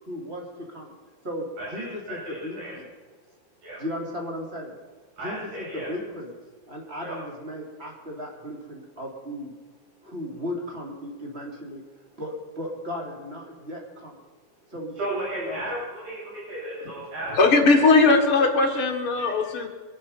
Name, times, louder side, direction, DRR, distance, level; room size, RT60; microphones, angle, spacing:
voice 1, 0.0-0.9 1.2-2.9 3.8-4.8 5.2-6.3 6.7-9.5 10.0-11.8 12.2-14.2 14.7-15.6 16.8-16.9 19.1-19.4, left 1 dB, 20° right, 0 dB, 3.0 m, -36 dB
voice 2, 1.6-2.7 3.6-3.8 5.2-5.9 7.0-7.2 15.0-17.5 17.8-17.9, right 1 dB, 80° right, -7 dB, 8.6 m, -34 dB
voice 3, 17.4-19.7, left 3 dB, 45° left, 2 dB, 2.2 m, -19 dB
23.0 x 10.5 x 5.5 m, 1.4 s
omnidirectional pair, 4.0 m